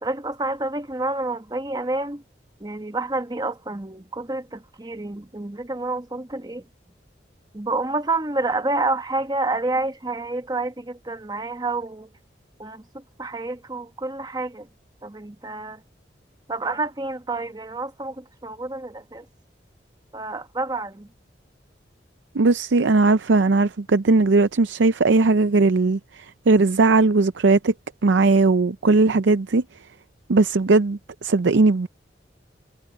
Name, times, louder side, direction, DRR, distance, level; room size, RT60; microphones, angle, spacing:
voice 1, 0.0-2.2 2.6-6.6 7.5-12.1 12.6-14.7 15.0-15.8 16.5-19.2 20.1-21.1, right 2 dB, 20° right, 1.2 m, -28 dB
voice 2, 22.3-27.7 28.0-29.6 30.3-31.9, right 3 dB, 85° right, 0.6 m, -18 dB
head